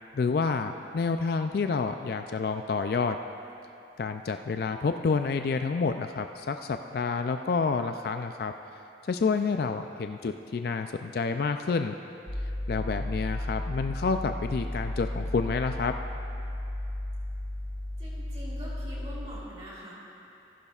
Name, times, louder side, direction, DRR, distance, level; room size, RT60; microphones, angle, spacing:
voice 1, 0.1-3.2 4.0-8.5 9.1-12.0 12.7-15.9, left 4 dB, 55° left, 7 dB, 0.3 m, -29 dB
sound 1, 12.3-19.3, left 1 dB, 85° left, 2.0 m, -34 dB
voice 2, 18.0-19.9, equal, 35° right, -8 dB, 3.2 m, -43 dB
15.5 x 15.0 x 2.4 m, 2.7 s
head